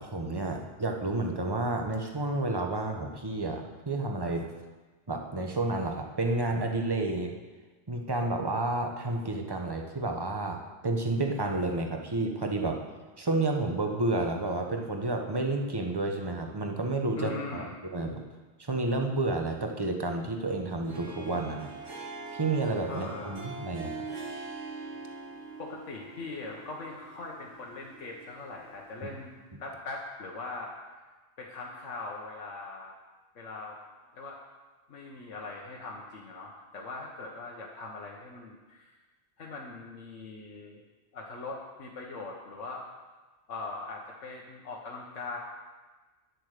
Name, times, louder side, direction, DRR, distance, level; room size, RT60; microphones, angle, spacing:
voice 1, 0.0-4.5 5.1-7.3 7.9-12.8 13.2-18.2 18.6-21.7 22.3-24.0, right 2 dB, 20° right, 3 dB, 1.1 m, -30 dB
voice 2, 17.1-17.7 22.9-23.4 25.6-29.3 29.6-30.7 31.4-33.0 33.3-33.8 34.1-34.4 34.9-38.9 39.4-40.8 41.1-42.8 43.5-45.4, left 3 dB, 85° left, -2 dB, 1.6 m, -41 dB
Harp, 20.8-29.1, right 3 dB, 75° right, 1.7 m, -43 dB
10.5 x 8.0 x 6.6 m, 1.3 s
omnidirectional pair, 1.2 m